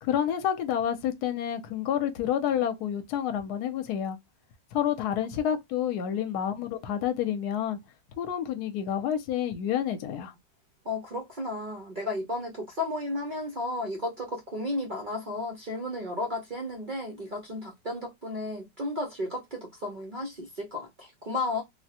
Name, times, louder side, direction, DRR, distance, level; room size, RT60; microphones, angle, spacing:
voice 1, 0.0-4.2 4.7-7.8 8.2-10.3, left 9 dB, 70° left, 1.1 m, -29 dB
voice 2, 10.8-21.6, left 2 dB, 75° right, 0.4 m, -33 dB
3.6 x 2.1 x 2.7 m
omnidirectional pair, 1.9 m